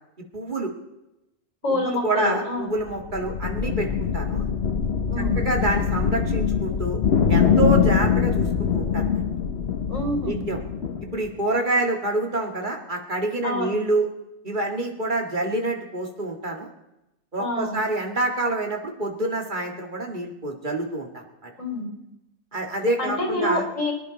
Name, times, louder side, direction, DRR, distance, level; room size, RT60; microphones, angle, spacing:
voice 1, 0.3-0.7 1.7-4.4 5.4-7.0 7.3-9.2 10.2-10.6 11.1-14.1 14.4-16.7 17.3-21.5 22.5-23.6, right 2 dB, 40° right, 2 dB, 2.1 m, -27 dB
voice 2, 1.6-2.7 5.1-5.4 9.9-10.4 13.4-13.8 17.4-17.8 21.6-21.9 23.0-23.9, left 1 dB, 85° left, 0 dB, 4.1 m, -27 dB
sound 1, 2.8-11.3, left 7 dB, 55° left, 1.1 m, -23 dB
24.0 x 10.5 x 4.0 m, 0.92 s
omnidirectional pair, 1.3 m